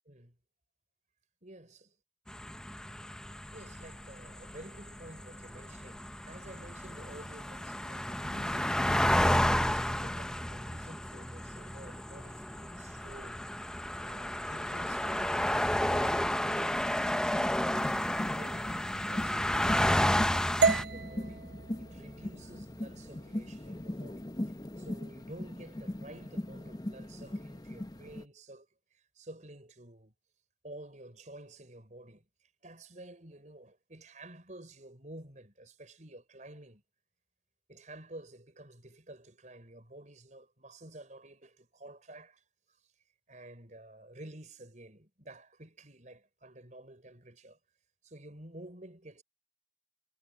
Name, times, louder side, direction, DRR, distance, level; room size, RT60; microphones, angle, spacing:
voice 1, 1.4-1.8 3.5-8.9 9.5-13.4 14.0-15.5 15.9-18.8 19.1-21.5 21.8-30.1 30.6-32.3 32.6-36.8 37.7-42.4 43.3-47.6 48.0-49.2, right 1 dB, 45° right, 5.4 m, -51 dB
sound 1, 2.3-20.8, left 1 dB, 5° left, 0.6 m, -31 dB
sound 2, 17.8-28.2, left 1 dB, 20° left, 0.9 m, -40 dB
sound 3, 20.6-24.7, right 4 dB, 70° right, 0.6 m, -34 dB
head